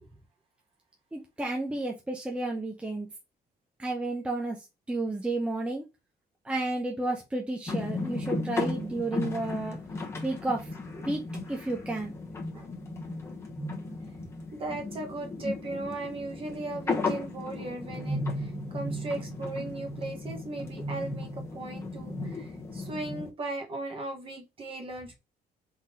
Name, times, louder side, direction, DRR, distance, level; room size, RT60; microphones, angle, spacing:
voice 1, 1.1-3.1 3.8-4.6 4.9-5.8 6.4-9.8 10.2-10.7 11.0-11.2 11.5-12.1, right 2 dB, 5° right, 0.6 m, -31 dB
sound 1, 7.7-23.3, left 2 dB, 15° left, 1.0 m, -35 dB
voice 2, 14.5-25.2, right 2 dB, 35° right, 1.4 m, -37 dB
3.8 x 3.0 x 4.2 m
cardioid pair, 155°, 17 cm